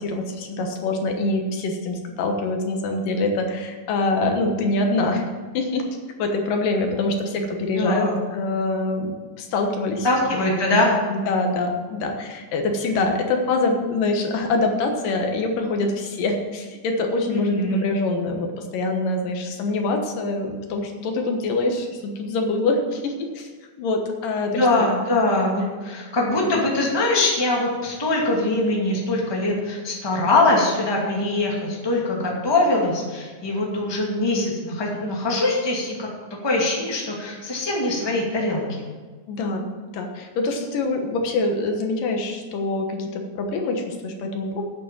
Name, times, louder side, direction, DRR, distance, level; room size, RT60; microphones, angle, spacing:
voice 1, 0.0-5.3 5.5-5.8 6.2-10.1 10.6-10.8 11.1-23.5 23.8-24.9 39.3-44.6, left 2 dB, 75° left, 3 dB, 2.9 m, -25 dB
voice 2, 7.7-8.2 10.0-10.9 17.3-17.8 24.5-36.1 36.4-38.6, left 2 dB, 10° left, -2 dB, 1.7 m, -22 dB
9.2 x 8.5 x 7.5 m, 1.4 s
omnidirectional pair, 3.9 m